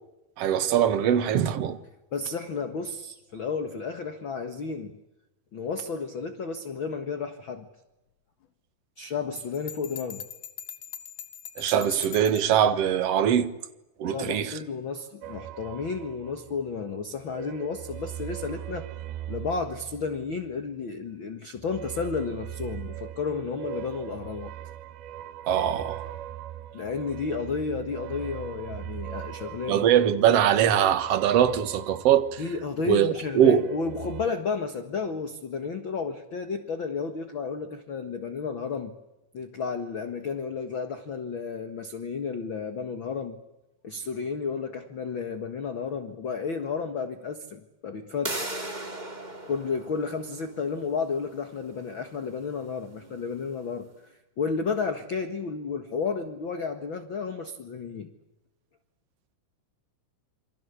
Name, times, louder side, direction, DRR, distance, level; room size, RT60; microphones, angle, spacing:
voice 1, 0.4-1.8 11.6-13.5 14.0-14.5 25.5-26.0 29.7-32.4 32.9-33.7, right 9 dB, 50° right, 2.1 m, -22 dB
voice 2, 2.1-5.0 5.5-7.7 9.0-10.2 14.1-18.9 19.3-24.5 26.7-29.9 32.4-38.9 39.3-43.4 43.8-48.4 49.5-53.9 54.4-58.1, left 5 dB, 45° left, 1.7 m, -32 dB
Bell, 9.4-12.6, left 10 dB, 75° left, 3.3 m, -41 dB
sound 1, 15.2-16.8 17.2-20.7 21.6-32.9 33.2-34.3, right 12 dB, 85° right, 3.1 m, -40 dB
sound 2, 48.2-53.8, right 2 dB, 15° right, 2.5 m, -39 dB
28.0 x 24.5 x 8.3 m
omnidirectional pair, 4.2 m